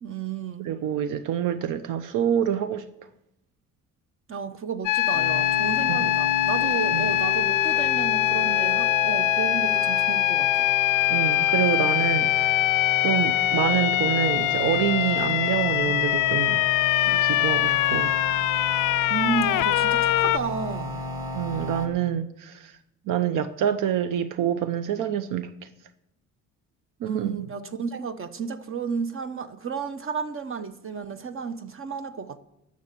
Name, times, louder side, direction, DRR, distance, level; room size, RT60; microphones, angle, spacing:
voice 1, 0.0-0.7 4.3-10.7 19.1-21.0 27.0-32.4, right 5 dB, 40° right, 1.0 m, -32 dB
voice 2, 0.6-2.8 5.9-6.0 6.9-7.1 11.1-12.6 13.0-16.6 17.0-18.1 21.3-22.7 23.1-25.5 27.0-27.5, right 10 dB, 80° right, 0.7 m, -26 dB
sound 1, 4.9-20.4, left 16 dB, 70° left, 0.5 m, -23 dB
sound 2, 5.1-21.9, left 1 dB, 10° right, 2.3 m, -34 dB
13.0 x 6.6 x 8.4 m
cardioid pair, 90°, 32 cm